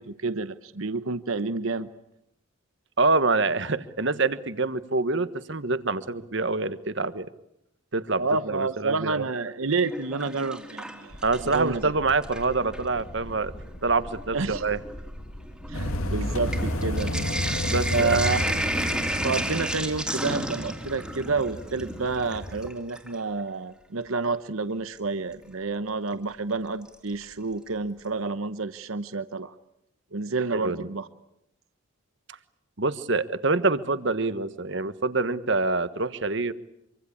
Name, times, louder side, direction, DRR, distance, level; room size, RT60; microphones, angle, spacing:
voice 1, 0.0-1.9 8.2-11.2 11.5-11.9 14.3-14.6 15.7-17.1 17.9-18.4 19.2-29.5 30.1-31.1, right 4 dB, 75° right, 12 dB, 1.0 m, -29 dB
voice 2, 3.0-7.3 7.9-9.2 11.2-13.5 13.8-14.8 17.7-18.2 30.5-30.9 32.8-36.5, right 3 dB, 55° right, 12 dB, 1.3 m, -26 dB
Sink (filling or washing), 9.7-11.8 12.1-12.9 13.7-13.8 14.1-23.2 25.0-25.1 26.9-27.3 27.7-27.8 28.0-28.1, right 1 dB, 5° right, 2.4 m, -33 dB
earth rumble, 11.1-16.9, equal, 40° left, 1.6 m, -42 dB
sound 1, 15.7-22.7, left 1 dB, 85° left, 2.4 m, -31 dB
26.0 x 24.5 x 8.5 m, 0.81 s
head